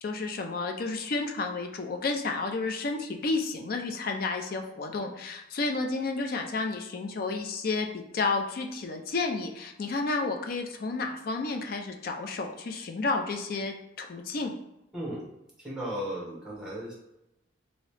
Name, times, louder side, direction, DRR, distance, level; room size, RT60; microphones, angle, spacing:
voice 1, 0.0-14.5, left 3 dB, 50° left, 4 dB, 0.4 m, -31 dB
voice 2, 14.9-15.3 15.6-16.9, equal, 5° right, -5 dB, 0.9 m, -35 dB
2.9 x 2.7 x 3.2 m, 0.88 s
head